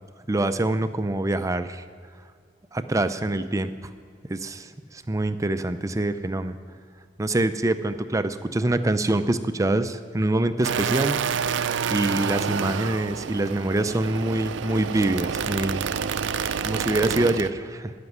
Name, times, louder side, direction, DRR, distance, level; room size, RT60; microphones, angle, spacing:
voice 1, 0.3-1.8 2.7-3.9 4.3-6.6 7.2-11.2 11.9-15.9 16.6-17.9, right 2 dB, 20° right, 10 dB, 0.4 m, -25 dB
sound 1, 10.6-17.5, right 7 dB, 75° right, 0.4 m, -28 dB
13.5 x 6.0 x 9.4 m, 2.1 s
head